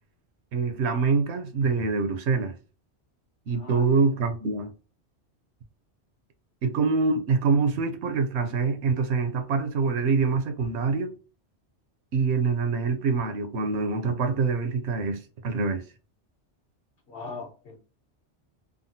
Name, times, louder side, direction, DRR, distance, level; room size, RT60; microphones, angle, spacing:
voice 1, 0.5-2.5 3.5-4.7 6.6-11.1 12.1-15.8, right 4 dB, 75° right, 0.9 m, -25 dB
voice 2, 3.5-4.1 17.1-17.8, left 4 dB, 55° left, 1.1 m, -40 dB
3.5 x 2.0 x 2.6 m
omnidirectional pair, 1.2 m